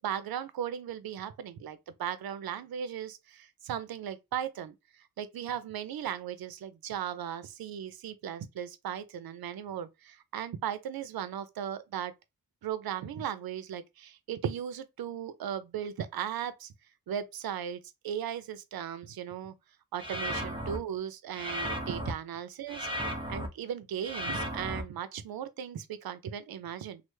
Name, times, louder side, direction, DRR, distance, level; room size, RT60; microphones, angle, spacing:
voice 1, 0.0-4.7 5.2-12.1 12.6-16.7 17.1-19.5 19.9-27.0, right 9 dB, 80° right, 0.5 m, -37 dB
sound 1, 20.0-20.8 21.3-22.1 22.7-23.5 24.0-24.8, equal, 15° right, 0.6 m, -35 dB
3.2 x 2.0 x 3.1 m
wide cardioid pair, 110°, 36 cm